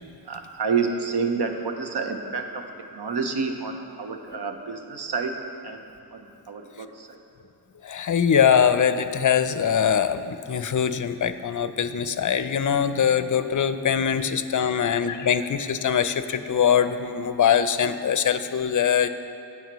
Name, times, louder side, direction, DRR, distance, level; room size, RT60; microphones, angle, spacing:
voice 1, 0.2-2.7 2.9-5.8 6.1-7.2, right 5 dB, 70° right, 5 dB, 0.9 m, -29 dB
voice 2, 7.8-19.1, left 8 dB, 50° left, 11 dB, 0.5 m, -22 dB
16.5 x 5.7 x 3.0 m, 2.8 s
wide cardioid pair, 75°, 41 cm